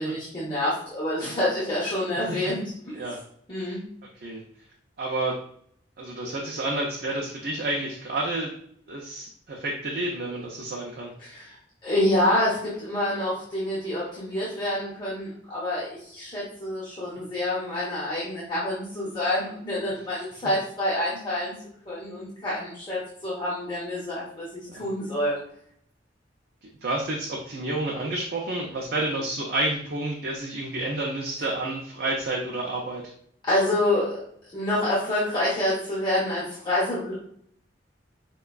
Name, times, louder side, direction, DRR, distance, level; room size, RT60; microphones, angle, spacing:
voice 1, 0.0-2.9 3.5-3.8 11.2-11.6 11.8-21.5 21.8-25.3 33.5-34.1 34.5-37.1, left 1 dB, 25° left, -9 dB, 0.9 m, -27 dB
voice 2, 2.2-2.5 2.9-3.2 3.6-3.8 4.2-4.4 5.0-5.4 6.0-8.5 8.9-11.1 24.7-24.9 26.8-33.1, right 2 dB, 55° right, -1 dB, 0.5 m, -30 dB
4.7 x 2.2 x 2.3 m, 0.64 s
head